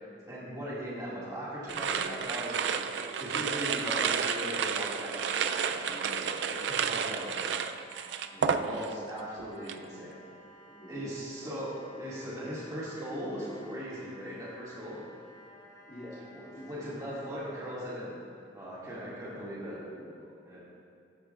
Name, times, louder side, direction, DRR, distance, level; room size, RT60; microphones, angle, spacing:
voice 1, 0.2-7.4 8.3-10.2 10.9-11.7 12.0-15.0 16.3-18.2 18.5-19.8 20.4-20.6, equal, 20° right, -8 dB, 2.1 m, -39 dB
sound 1, 1.7-9.1 9.4-9.9, right 6 dB, 70° right, 0.4 m, -31 dB
sound 2, 5.9-17.8, equal, 15° left, 2.2 m, -55 dB
voice 2, 10.7-12.0 12.4-12.5 13.1-13.9 15.9-16.8 17.3-17.4 19.4-20.6, equal, 40° left, -8 dB, 2.3 m, -46 dB
14.0 x 9.8 x 2.4 m, 2.5 s
head